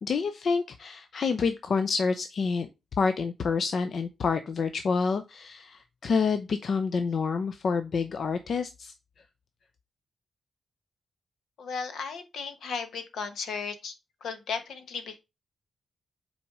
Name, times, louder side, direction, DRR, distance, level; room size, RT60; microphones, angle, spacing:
voice 1, 0.0-2.7 3.0-8.9, left 5 dB, 55° left, 0.5 m, -28 dB
voice 2, 11.6-13.9 14.2-15.2, left 5 dB, 80° left, 1.2 m, -35 dB
5.8 x 4.2 x 4.8 m
wide cardioid pair, 125°, 0 cm